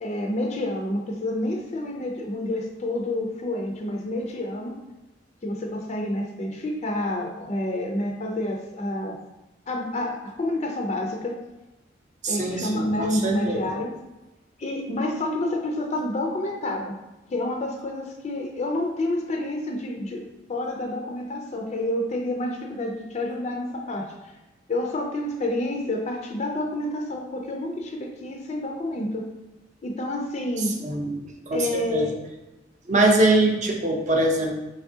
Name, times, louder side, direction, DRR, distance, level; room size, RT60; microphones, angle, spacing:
voice 1, 0.0-4.8 5.4-9.2 9.7-11.4 12.3-13.9 14.6-17.0 17.3-24.3 24.7-29.3 29.8-30.8 31.5-32.1, left 1 dB, 35° left, 1 dB, 0.4 m, -29 dB
voice 2, 12.2-13.6 30.8-32.1 32.9-34.5, right 2 dB, 40° right, 1 dB, 0.6 m, -23 dB
4.1 x 3.5 x 2.7 m, 1.0 s
head